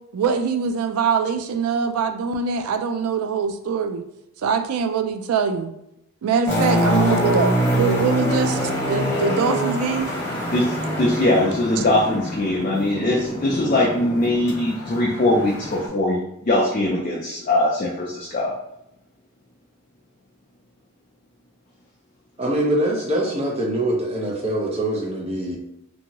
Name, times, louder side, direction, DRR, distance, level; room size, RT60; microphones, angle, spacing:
voice 1, 0.1-4.1 4.4-5.7 6.2-10.1, right 6 dB, 85° right, 9 dB, 0.3 m, -23 dB
sound 1, 6.5-15.9, equal, 10° left, 0.9 m, -25 dB
voice 2, 10.5-18.6, left 1 dB, 35° left, -3 dB, 0.4 m, -21 dB
voice 3, 22.4-25.6, right 1 dB, 25° right, -2 dB, 0.6 m, -23 dB
2.7 x 2.6 x 2.8 m, 0.81 s
head